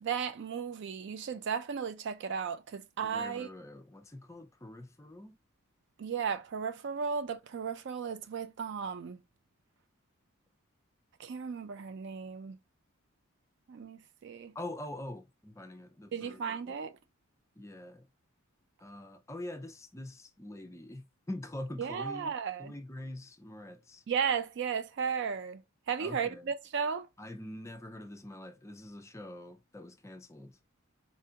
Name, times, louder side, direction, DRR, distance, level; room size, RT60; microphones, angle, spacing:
voice 1, 0.0-3.5 6.0-9.2 11.2-12.6 13.7-14.5 16.1-17.0 21.8-22.7 24.1-25.6 25.9-27.1, right 6 dB, 50° right, 0.3 m, -35 dB
voice 2, 3.0-5.3 14.6-16.4 17.6-18.1 18.8-22.3 22.6-24.0 26.0-26.5 27.2-30.6, left 1 dB, 15° left, 0.4 m, -44 dB
4.2 x 2.4 x 2.7 m
head